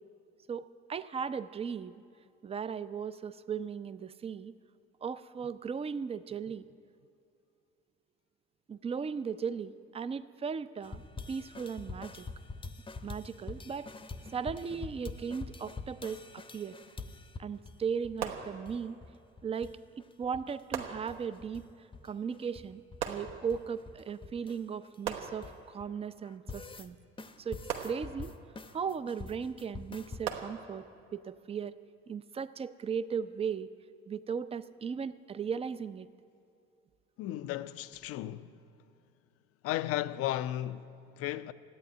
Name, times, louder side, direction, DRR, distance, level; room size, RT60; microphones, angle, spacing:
voice 1, 0.5-2.0 2.4-4.5 5.0-6.6 8.7-11.0 11.3-12.3 13.0-13.9 14.3-16.8 17.4-19.0 19.4-19.8 20.2-21.6 22.0-27.0 27.4-28.3 28.7-30.9 31.1-31.7 32.1-33.7 34.1-36.1, right 6 dB, 20° right, 0.5 m, -37 dB
sound 1, 10.8-17.8 18.0-18.2 18.4-19.1 19.4-19.7 20.0-21.6 21.9-25.8 26.2-26.9 27.2-30.2, left 3 dB, 15° left, 0.8 m, -45 dB
sound 2, 18.2-19.1 20.7-21.6 23.0-23.9 25.0-26.0 27.7-28.6 30.2-31.1, right 7 dB, 70° right, 1.2 m, -40 dB
voice 2, 37.2-38.6 39.6-41.5, left 14 dB, 45° left, 0.5 m, -35 dB
14.0 x 9.2 x 9.7 m
figure-of-eight pair, 55°, 33 cm